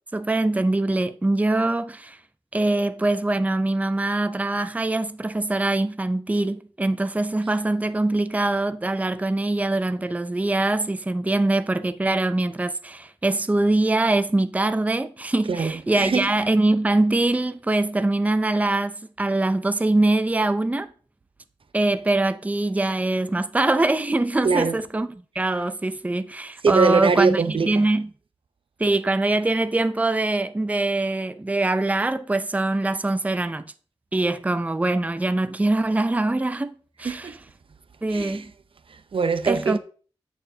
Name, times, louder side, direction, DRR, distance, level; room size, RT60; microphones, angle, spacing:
voice 1, 0.1-2.2 2.5-20.9 21.7-25.1 25.4-28.1 28.8-33.7 34.1-37.3 38.0-38.5 39.5-39.8, right 2 dB, 15° right, 0.4 m, -23 dB
voice 2, 15.5-16.3 24.4-24.8 26.6-27.9 37.0-37.4 38.1-38.5 38.9-39.8, right 5 dB, 60° right, 0.6 m, -23 dB
7.9 x 6.7 x 2.7 m
wide cardioid pair, 70°, 10 cm